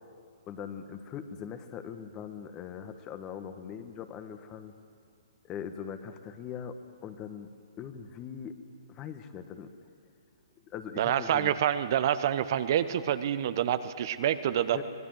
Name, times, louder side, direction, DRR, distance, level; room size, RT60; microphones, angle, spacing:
voice 1, 0.5-4.7 5.4-7.5 7.8-8.6 8.9-9.7 10.7-11.5 14.7-14.8, left 8 dB, 25° left, 8 dB, 1.5 m, -41 dB
voice 2, 11.0-14.8, right 10 dB, 45° right, 12 dB, 1.0 m, -27 dB
25.5 x 20.0 x 7.9 m, 2.2 s
figure-of-eight pair, 125°, 3 cm